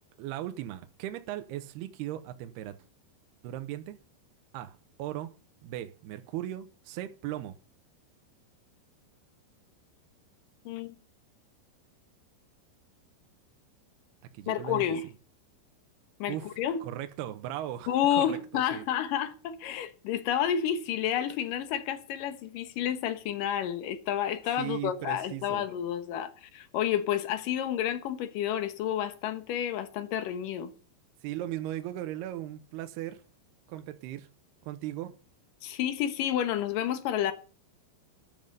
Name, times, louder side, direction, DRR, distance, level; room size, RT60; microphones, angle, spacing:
voice 1, 0.2-2.8 3.4-4.0 4.5-5.3 5.6-7.6 14.3-14.8 16.3-16.5 16.8-18.8 24.6-25.7 31.2-33.2 33.7-34.3 34.6-35.2, right 13 dB, 75° right, 2.5 m, -37 dB
voice 2, 10.7-11.0 14.5-15.0 16.2-16.8 17.9-30.7 35.6-37.3, left 10 dB, 75° left, 2.0 m, -30 dB
13.0 x 11.0 x 5.3 m
omnidirectional pair, 5.5 m